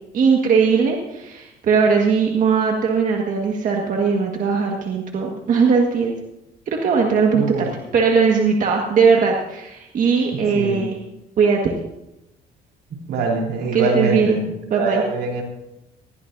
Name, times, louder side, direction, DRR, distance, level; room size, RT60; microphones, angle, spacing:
voice 1, 0.1-6.1 6.7-7.7 7.9-11.0 11.4-11.7 13.7-14.4 14.7-15.0, right 5 dB, 50° right, 1 dB, 1.7 m, -19 dB
voice 2, 7.3-7.7 10.3-10.8 12.9-14.5 14.7-15.4, right 3 dB, 75° right, 0 dB, 3.5 m, -23 dB
20.5 x 14.5 x 2.7 m, 0.90 s
cardioid pair, 110°, 17 cm